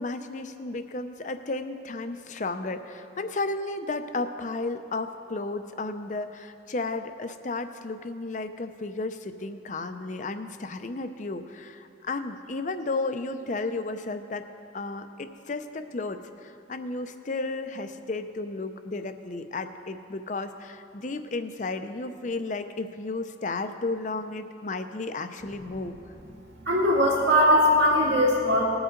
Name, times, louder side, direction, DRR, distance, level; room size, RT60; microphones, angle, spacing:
voice 1, 0.0-14.5 14.7-26.0, left 3 dB, 45° left, 9 dB, 0.6 m, -33 dB
voice 2, 26.7-28.6, equal, 70° right, -8 dB, 2.2 m, -20 dB
19.5 x 8.0 x 3.8 m, 2.5 s
head